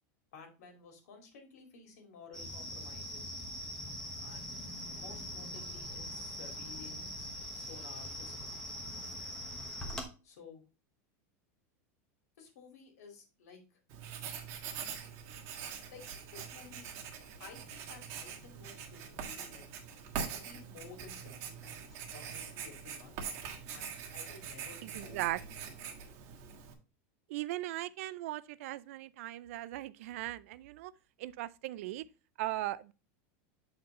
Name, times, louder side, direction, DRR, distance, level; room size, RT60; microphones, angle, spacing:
voice 1, 0.3-3.3 4.2-4.6 4.9-8.5 10.2-10.6 12.4-13.8 15.9-16.9 17.4-19.7 20.0-23.2 23.7-25.3, left 5 dB, 85° left, 2.4 m, -54 dB
sound 1, 2.3-10.0, equal, 5° left, 1.1 m, -42 dB
Writing, 13.9-26.7, right 7 dB, 40° right, 1.5 m, -43 dB
voice 2, 24.8-25.4 27.3-30.9 31.2-32.0 32.4-32.9, right 16 dB, 60° right, 0.4 m, -38 dB
8.1 x 4.3 x 3.7 m
supercardioid pair, 170°, 8 cm